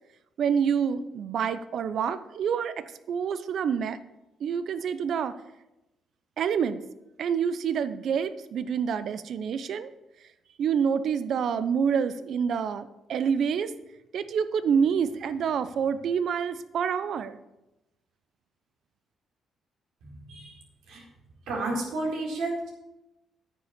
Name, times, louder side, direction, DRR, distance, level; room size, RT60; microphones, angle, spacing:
voice 1, 0.4-4.0 4.4-5.3 6.4-6.8 7.2-9.9 10.6-13.7 14.1-17.4, right 7 dB, 65° right, 13 dB, 0.7 m, -27 dB
voice 2, 20.0-20.6 20.9-21.0 21.5-22.7, right 2 dB, 85° right, -3 dB, 4.4 m, -32 dB
9.6 x 7.1 x 6.7 m, 0.93 s
cardioid pair, 90°, 0 cm